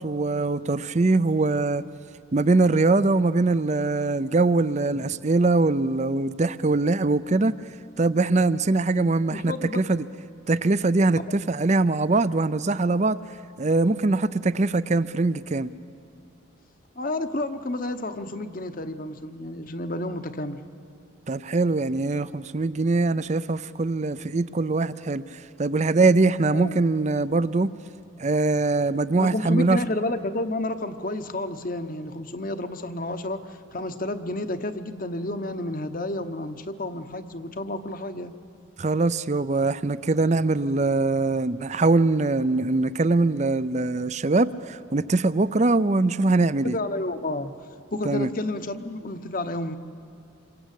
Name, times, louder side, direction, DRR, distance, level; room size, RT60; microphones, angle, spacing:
voice 1, 0.0-1.8 2.3-7.5 8.0-10.0 10.5-13.2 13.6-15.7 21.3-27.7 28.2-29.8 38.8-46.8 48.0-48.3, right 3 dB, 35° right, 16 dB, 0.5 m, -22 dB
voice 2, 9.3-9.8 17.0-20.6 26.5-26.8 29.2-38.3 46.6-47.5 47.9-49.8, left 2 dB, 45° left, 9 dB, 1.0 m, -30 dB
27.5 x 23.5 x 8.3 m, 2.6 s
head